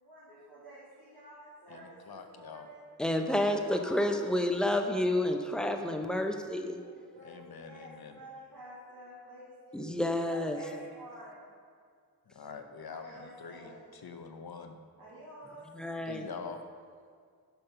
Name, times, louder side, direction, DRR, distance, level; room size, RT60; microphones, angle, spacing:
voice 1, 0.1-2.9 3.2-4.3 6.7-11.5 12.9-13.9 15.0-15.7, equal, 80° right, -11 dB, 2.3 m, -50 dB
voice 2, 1.7-2.7 7.2-8.2 12.3-14.8 16.1-16.6, left 5 dB, 80° left, 6 dB, 0.7 m, -45 dB
voice 3, 3.0-6.8 9.7-10.6 15.7-16.2, left 1 dB, ahead, 5 dB, 0.7 m, -30 dB
6.9 x 5.3 x 5.7 m, 2.1 s
wide cardioid pair, 45°, 37 cm